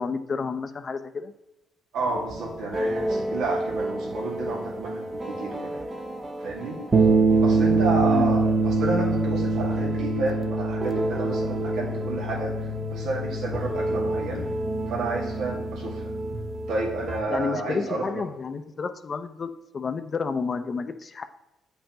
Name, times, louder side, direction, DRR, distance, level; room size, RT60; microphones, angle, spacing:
voice 1, 0.0-1.3 8.0-8.4 17.3-21.2, left 5 dB, 40° left, 9 dB, 0.6 m, -30 dB
voice 2, 1.9-5.8 6.4-6.8 7.4-14.5 14.9-16.1 16.7-18.2, right 3 dB, 85° right, -2 dB, 1.8 m, -30 dB
sound 1, 2.3-17.2, right 2 dB, 30° right, 0.9 m, -25 dB
8.6 x 5.4 x 2.9 m, 0.93 s
cardioid pair, 90°, 0 cm